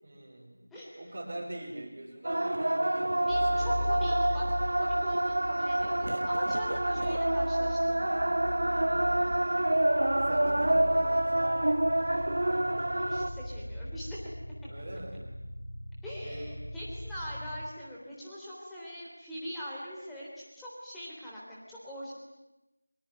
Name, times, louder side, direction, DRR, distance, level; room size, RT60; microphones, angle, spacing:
voice 1, 0.0-0.6 0.9-3.9 8.7-9.3 9.7-11.5 14.7-15.2 16.2-16.5, right 1 dB, 25° right, -5 dB, 5.7 m, -43 dB
voice 2, 0.7-1.0 3.3-4.5 4.8-8.2 12.9-14.2 16.0-22.1, equal, ahead, -8 dB, 3.5 m, -42 dB
sound 1, 2.2-13.3, right 1 dB, 55° right, 1.8 m, -27 dB
sound 2, 3.3-17.7, equal, 65° left, 4.5 m, -39 dB
25.0 x 24.0 x 9.5 m, 0.96 s
figure-of-eight pair, 170°, 0 cm